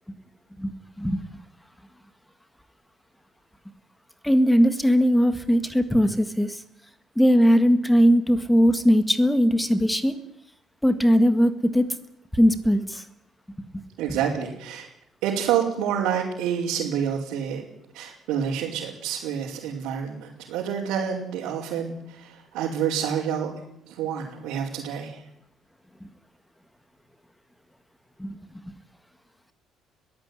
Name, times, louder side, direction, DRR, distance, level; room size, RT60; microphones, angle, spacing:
voice 1, 4.2-6.6 7.1-10.1 10.8-11.9 12.3-13.0 14.1-14.2 28.2-28.3, equal, 5° left, 11 dB, 1.7 m, -19 dB
voice 2, 14.0-14.9 15.2-17.6 17.9-23.5 23.9-25.2, right 8 dB, 85° right, -5 dB, 5.2 m, -28 dB
21.5 x 15.0 x 9.8 m, 0.77 s
cardioid pair, 170°, 0 cm